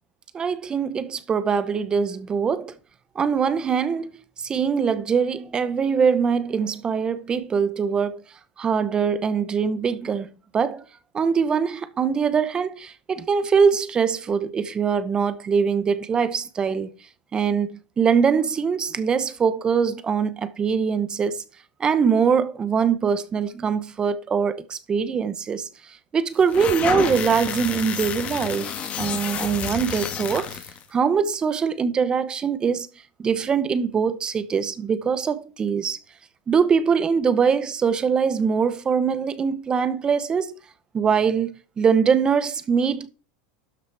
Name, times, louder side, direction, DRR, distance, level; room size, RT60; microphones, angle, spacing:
voice 1, 0.3-2.8 3.1-4.1 4.4-8.2 8.6-10.8 11.1-16.9 17.3-21.4 21.8-30.6 30.9-32.9 33.2-36.0 36.5-40.5 40.9-43.1, right 6 dB, 20° right, 0.8 m, -23 dB
sound 1, 26.4-30.8, left 8 dB, 30° left, 1.4 m, -30 dB
12.5 x 5.8 x 4.7 m
supercardioid pair, 150°, 5 cm